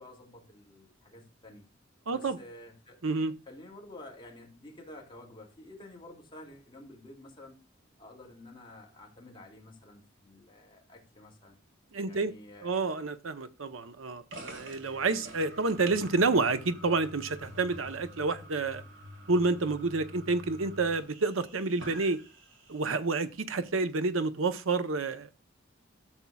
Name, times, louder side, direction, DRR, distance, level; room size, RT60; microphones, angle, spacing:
voice 1, 0.0-1.7 2.1-3.0 3.5-7.6 8.0-11.6 12.1-12.8, left 1 dB, 25° left, 2.5 m, -50 dB
voice 2, 2.1-2.4 3.0-3.3 11.9-12.3 12.6-18.8 19.3-22.2 22.7-25.3, right 3 dB, 85° right, 0.9 m, -29 dB
sound 1, 14.3-23.0, equal, 65° right, 2.0 m, -48 dB
13.0 x 7.2 x 2.3 m
head